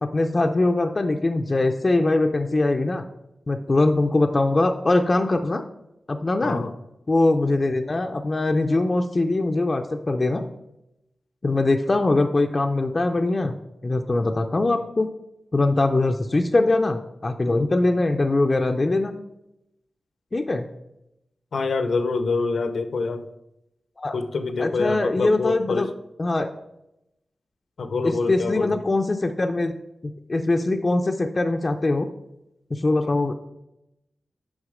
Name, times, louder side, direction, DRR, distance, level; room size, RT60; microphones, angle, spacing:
voice 1, 0.0-3.0 3.5-5.6 6.1-6.6 7.1-10.4 11.4-13.5 13.8-15.1 15.5-19.1 20.3-20.7 24.0-24.1 24.6-25.9 26.2-26.5 28.0-29.7 30.0-32.1 32.7-33.3, left 2 dB, 30° left, 4 dB, 0.5 m, -22 dB
voice 2, 6.4-6.7 21.5-23.3 24.1-25.9 27.8-28.8, left 4 dB, 70° left, 9 dB, 0.7 m, -26 dB
9.6 x 5.7 x 4.9 m, 0.87 s
wide cardioid pair, 115°, 0 cm